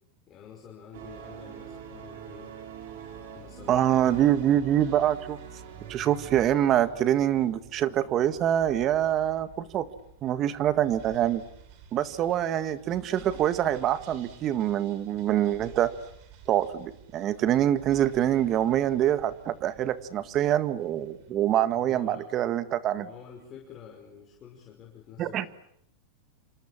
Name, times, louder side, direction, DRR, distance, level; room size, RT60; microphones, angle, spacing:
voice 1, 0.3-2.5 3.3-4.8 21.8-22.3 22.9-25.5, left 8 dB, 30° left, 1 dB, 5.5 m, -48 dB
sound 1, 0.9-6.5, right 7 dB, 70° right, 5.7 m, -43 dB
sound 2, 2.8-22.1, right 7 dB, 55° right, 5.8 m, -52 dB
voice 2, 3.7-5.4 5.9-9.9 10.2-11.4 11.9-15.9 16.5-23.1 25.2-25.5, right 11 dB, 35° right, 12 dB, 1.8 m, -25 dB
27.5 x 26.0 x 7.5 m, 0.73 s
hypercardioid pair, 125°, 0 cm